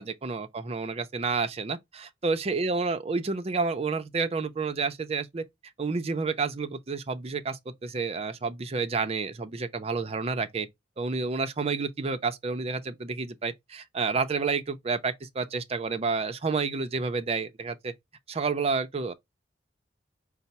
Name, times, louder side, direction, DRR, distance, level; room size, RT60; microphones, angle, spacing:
voice 1, 0.0-5.4 5.8-10.7 11.0-17.9 18.3-19.1, right 4 dB, 35° right, 0.5 m, -30 dB
5.5 x 2.0 x 4.0 m
head